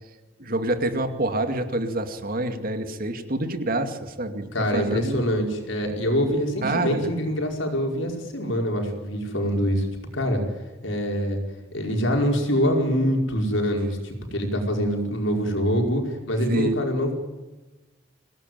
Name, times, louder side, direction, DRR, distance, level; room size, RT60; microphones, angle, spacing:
voice 1, 0.4-5.2 6.6-7.1 16.5-16.8, right 1 dB, 50° right, 7 dB, 2.5 m, -27 dB
voice 2, 4.5-9.9 10.1-10.4 10.8-11.4 11.7-17.2, equal, 80° left, 2 dB, 5.2 m, -24 dB
24.5 x 18.0 x 9.3 m, 1.1 s
head